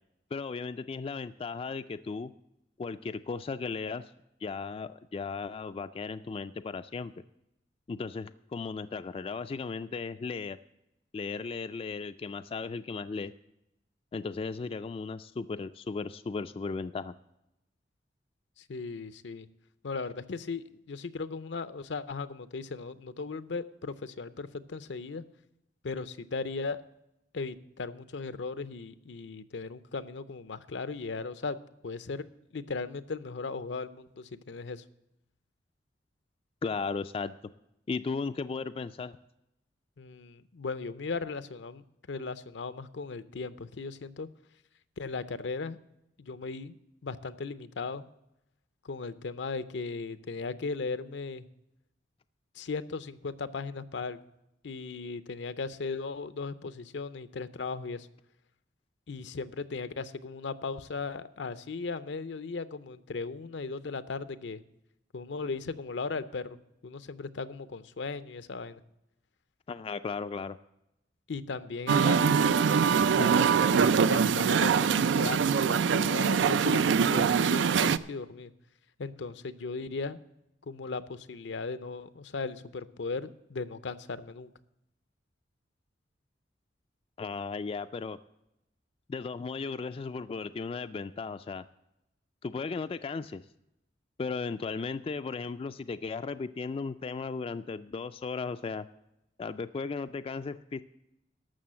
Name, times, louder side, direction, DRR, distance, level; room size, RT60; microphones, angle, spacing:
voice 1, 0.3-2.3 2.8-4.1 4.4-7.1 7.9-10.6 11.1-13.3 14.1-17.1 36.6-37.3 37.9-39.2 69.7-70.6 87.2-88.2 89.1-91.6 92.4-93.4 94.2-98.9 99.4-100.8, left 4 dB, 30° left, 10 dB, 0.3 m, -36 dB
voice 2, 18.6-19.5 19.8-25.2 25.8-26.8 27.3-31.6 31.8-32.2 32.5-34.8 40.0-44.3 45.0-45.8 46.2-46.8 47.0-48.1 48.8-51.5 52.6-54.2 54.6-58.1 59.1-64.6 65.1-66.6 66.8-68.8 71.3-72.6 73.2-78.5 79.0-80.2 80.7-84.5, left 4 dB, 75° left, 13 dB, 0.6 m, -37 dB
Musical instrument, 71.9-78.0, right 6 dB, 85° right, 0.4 m, -23 dB
13.0 x 6.3 x 7.5 m, 0.87 s
head